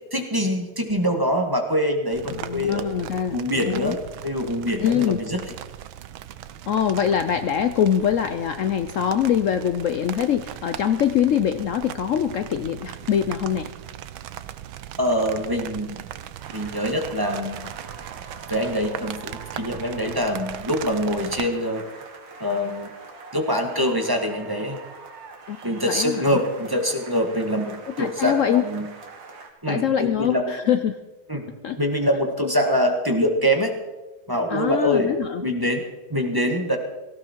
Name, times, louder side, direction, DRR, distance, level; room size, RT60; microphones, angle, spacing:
voice 1, 0.1-2.9 3.3-4.0 4.2-5.4 15.0-16.0 16.5-17.7 18.5-21.8 22.4-22.9 23.3-24.8 25.6-28.9 29.6-30.5 31.3-31.5 31.8-33.7 34.3-35.1 35.4-35.8 36.1-36.8, equal, 10° right, 3 dB, 1.6 m, -24 dB
sound 1, 2.1-21.5, right 11 dB, 85° right, 1.5 m, -38 dB
voice 2, 2.3-4.0 4.8-5.2 6.7-13.7 25.5-25.6 25.9-26.4 27.9-28.6 29.7-31.0 31.6-31.8 34.5-35.4, left 9 dB, 85° left, 10 dB, 0.7 m, -23 dB
sound 2, 16.4-29.5, right 4 dB, 70° right, 2.7 m, -43 dB
18.0 x 15.5 x 4.5 m, 1.1 s
omnidirectional pair, 2.1 m